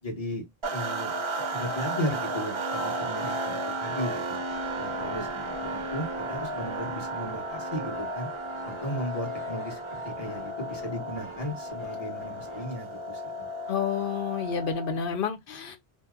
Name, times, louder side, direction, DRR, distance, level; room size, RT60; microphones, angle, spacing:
voice 1, 0.0-0.4 0.7-1.1 1.5-4.4 4.8-8.3 8.6-9.8 10.0-13.5, left 1 dB, 35° left, 1.3 m, -35 dB
sound 1, 0.6-15.2, right 2 dB, 40° right, 0.5 m, -34 dB
sound 2, 3.9-12.8, left 1 dB, 15° left, 1.2 m, -48 dB
voice 2, 13.7-15.8, left 7 dB, 65° left, 0.7 m, -30 dB
2.7 x 2.2 x 3.4 m
omnidirectional pair, 1.0 m